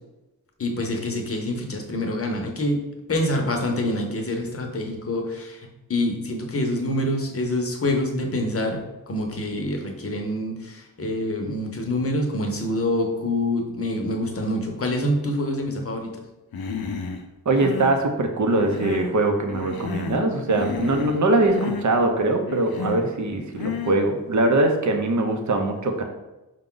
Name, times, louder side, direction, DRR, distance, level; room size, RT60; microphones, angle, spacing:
voice 1, 0.6-5.6 5.9-16.1, left 1 dB, 35° left, 2 dB, 0.7 m, -26 dB
Human voice, 16.5-17.2 17.5-18.0 18.5-19.2 19.5-20.2 20.5-21.2 21.5-21.9 22.5-23.1 23.5-24.0, left 6 dB, 70° left, 0.5 m, -31 dB
voice 2, 17.5-26.0, right 2 dB, 50° right, 4 dB, 0.6 m, -22 dB
5.0 x 2.3 x 3.8 m, 1.0 s
wide cardioid pair, 95°, 38 cm